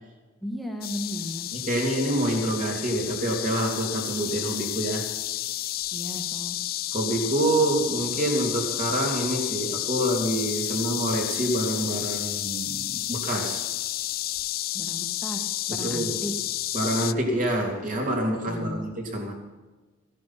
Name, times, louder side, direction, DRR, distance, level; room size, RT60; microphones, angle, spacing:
voice 1, 0.4-1.5 5.9-6.6 10.7-10.8 14.7-16.3 18.5-18.9, equal, ahead, 2 dB, 1.9 m, -35 dB
sound 1, 0.8-17.1, left 15 dB, 45° left, 0.4 m, -31 dB
voice 2, 1.5-5.1 6.9-13.7 15.7-16.2 16.7-19.3, right 1 dB, 40° right, 0 dB, 3.3 m, -27 dB
15.5 x 11.0 x 5.9 m, 1.2 s
head